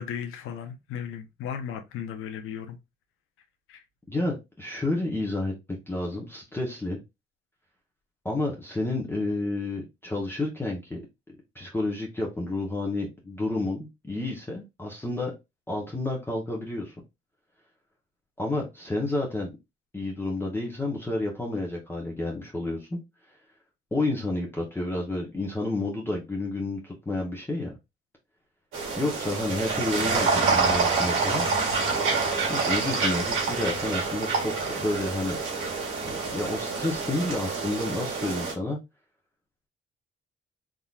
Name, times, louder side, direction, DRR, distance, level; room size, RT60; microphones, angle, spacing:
voice 1, 0.0-2.8 3.7-3.8, left 8 dB, 90° left, 0.8 m, -36 dB
voice 2, 4.1-5.5 5.9-7.0 8.2-11.0 11.5-15.3 15.7-16.9 18.4-19.5 19.9-23.0 23.9-27.8 29.0-31.4 32.5-35.4 36.0-38.8, left 2 dB, 10° left, 1.0 m, -30 dB
sound 1, 28.7-38.5, right 4 dB, 75° right, 1.7 m, -27 dB
3.6 x 2.8 x 2.4 m
cardioid pair, 105°, 21 cm